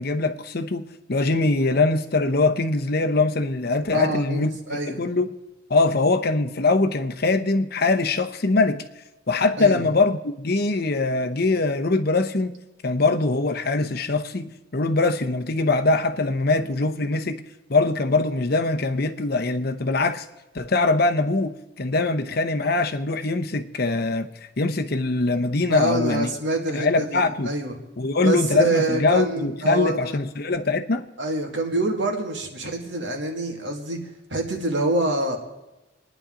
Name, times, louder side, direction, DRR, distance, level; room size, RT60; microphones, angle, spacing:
voice 1, 0.0-4.5 4.9-5.3 5.7-8.8 9.3-12.5 12.8-17.4 17.7-20.3 20.5-24.3 24.6-26.3 26.7-27.5 28.0-31.1, left 3 dB, 50° left, 0.8 m, -22 dB
voice 2, 3.9-5.0 9.6-9.8 25.7-27.8 28.2-30.1 31.2-35.4, right 2 dB, 65° right, 2.2 m, -26 dB
28.0 x 10.0 x 3.8 m
head